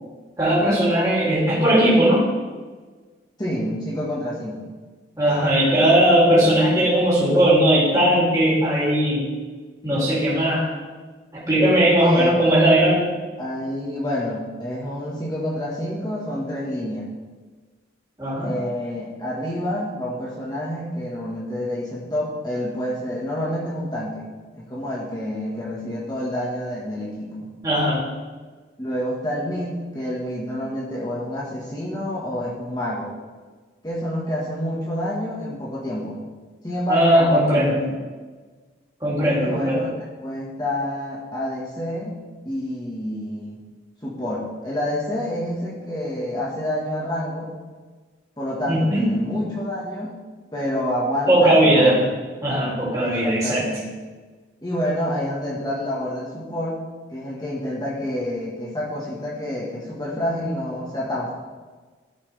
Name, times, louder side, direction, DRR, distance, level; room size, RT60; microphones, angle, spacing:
voice 1, 0.4-2.3 5.2-9.3 9.8-10.7 11.5-13.1 18.2-18.5 27.6-28.0 36.9-37.8 39.0-39.8 48.7-49.1 51.3-52.0 52.4-53.6, right 1 dB, 20° right, -9 dB, 2.7 m, -18 dB
voice 2, 3.4-4.7 12.0-12.4 13.4-17.1 18.4-24.3 24.5-27.5 28.8-33.1 33.8-36.2 36.6-37.7 39.4-39.9 40.2-42.2 42.4-43.6 44.0-47.5 48.4-50.2 50.5-52.0 53.0-53.9 54.6-61.3, left 1 dB, 20° left, -5 dB, 1.5 m, -28 dB
13.0 x 5.8 x 3.4 m, 1.4 s
head